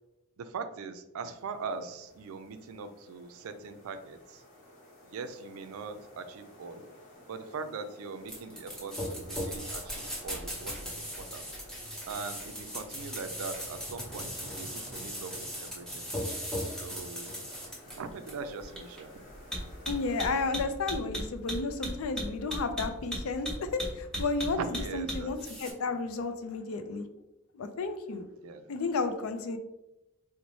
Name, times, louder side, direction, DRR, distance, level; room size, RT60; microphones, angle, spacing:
voice 1, 0.4-4.4 5.0-6.9 7.3-11.5 12.1-16.1 16.8-17.4 17.8-19.2 24.6-25.8 28.4-28.7, right 4 dB, 75° right, 9 dB, 0.4 m, -41 dB
sound 1, 1.2-20.5, equal, 35° left, 1.1 m, -53 dB
sound 2, 8.3-25.7, equal, 5° left, 0.7 m, -37 dB
voice 2, 19.9-27.1 27.5-28.3 28.7-29.6, left 3 dB, 70° left, 9 dB, 0.4 m, -32 dB
4.0 x 2.1 x 3.0 m, 0.94 s
head